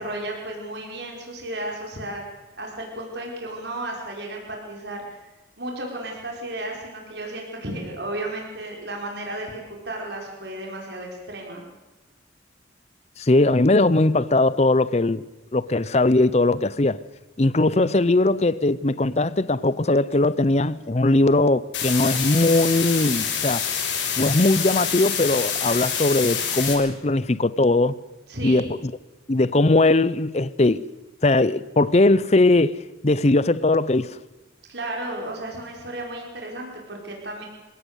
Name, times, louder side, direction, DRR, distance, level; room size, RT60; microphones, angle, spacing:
voice 1, 0.0-2.2 2.5-5.2 5.6-9.6 9.8-11.6 28.3-28.6 34.7-37.5, right 1 dB, 65° right, 5.1 m, -33 dB
voice 2, 13.2-15.2 15.5-17.0 17.4-23.6 24.2-28.0 28.4-28.7 29.3-30.9 31.2-32.8 33.0-34.2, left 2 dB, 35° left, 0.7 m, -20 dB
sound 1, 21.7-26.7, left 7 dB, 85° left, 6.2 m, -26 dB
26.0 x 17.5 x 8.2 m
head